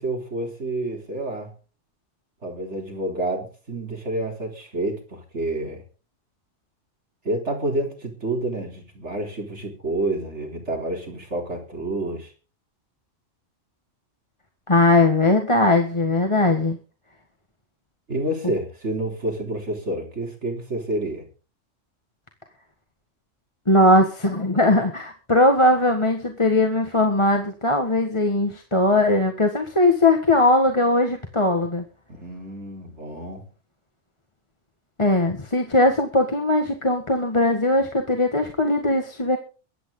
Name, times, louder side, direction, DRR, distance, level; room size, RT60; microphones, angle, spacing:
voice 1, 0.0-1.5 2.4-5.8 7.2-12.3 18.1-21.3 32.1-33.5, right 1 dB, 65° right, 2 dB, 3.9 m, -29 dB
voice 2, 14.7-16.8 23.7-31.8 35.0-39.4, left 2 dB, 25° left, 4 dB, 1.8 m, -19 dB
22.5 x 9.4 x 3.9 m, 0.34 s
omnidirectional pair, 1.3 m